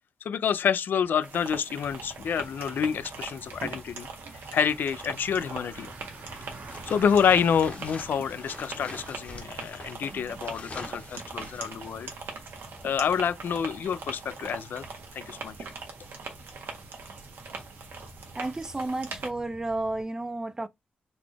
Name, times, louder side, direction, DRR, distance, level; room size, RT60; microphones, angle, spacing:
voice 1, 0.2-4.1 4.5-5.9 6.9-12.1 12.8-14.9 15.1-15.5, left 7 dB, 70° left, 0.3 m, -27 dB
sound 1, 1.2-19.3, right 4 dB, 80° right, 1.0 m, -42 dB
Bicycle, 1.8-20.0, right 2 dB, 60° right, 1.4 m, -48 dB
sound 2, 6.7-12.2, left 3 dB, 40° left, 0.8 m, -45 dB
voice 2, 18.3-20.7, right 2 dB, 15° right, 0.3 m, -32 dB
3.9 x 2.4 x 3.2 m
wide cardioid pair, 115°, 3 cm